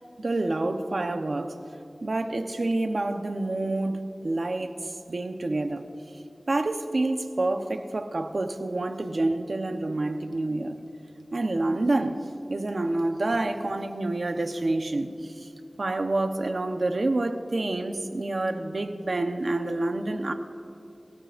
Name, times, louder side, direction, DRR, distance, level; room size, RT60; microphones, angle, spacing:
voice 1, 0.2-1.6 2.0-5.8 6.5-10.8 11.3-12.2 12.5-15.5 15.8-20.3, right 2 dB, 75° right, 6 dB, 0.9 m, -28 dB
28.0 x 16.5 x 2.6 m, 2.7 s
wide cardioid pair, 65°, 0 cm